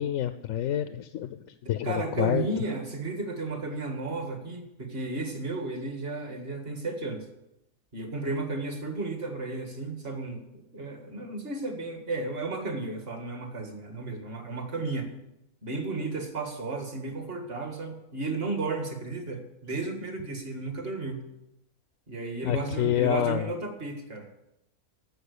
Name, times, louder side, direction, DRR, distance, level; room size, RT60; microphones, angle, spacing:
voice 1, 0.0-2.5 22.4-23.5, left 11 dB, 70° left, 11 dB, 0.9 m, -28 dB
voice 2, 1.8-7.3 7.9-10.4 10.7-15.1 15.6-21.2 22.1-24.3, right 3 dB, 40° right, 5 dB, 1.9 m, -33 dB
11.5 x 7.5 x 6.7 m, 0.87 s
omnidirectional pair, 1.6 m